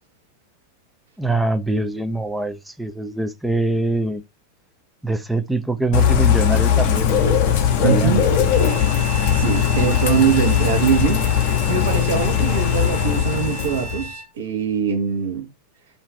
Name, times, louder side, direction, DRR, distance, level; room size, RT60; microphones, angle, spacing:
voice 1, 1.2-4.2 5.0-8.2, right 2 dB, 5° right, 0.3 m, -24 dB
Bird / Rain, 5.9-14.1, left 8 dB, 45° left, 0.6 m, -19 dB
voice 2, 7.8-8.2 9.3-11.2 11.7-15.5, right 7 dB, 60° right, 0.8 m, -22 dB
Bowed string instrument, 8.4-14.3, right 2 dB, 30° right, 1.1 m, -35 dB
2.5 x 2.3 x 3.0 m
figure-of-eight pair, 90°, 0 cm